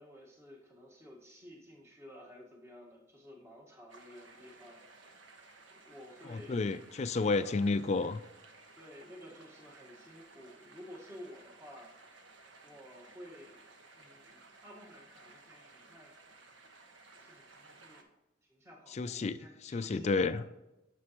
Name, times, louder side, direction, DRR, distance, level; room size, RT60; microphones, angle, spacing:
voice 1, 0.0-5.2 5.7-6.6 7.2-7.6 8.8-11.9 12.6-13.7 13.9-16.1 17.1-18.0 18.4-20.4, equal, 15° right, -1 dB, 1.5 m, -53 dB
sound 1, 3.9-18.0, right 3 dB, 90° right, 1.2 m, -57 dB
voice 2, 6.2-8.2 18.9-20.4, left 3 dB, 35° left, 13 dB, 0.3 m, -31 dB
9.5 x 6.8 x 3.0 m, 0.96 s
head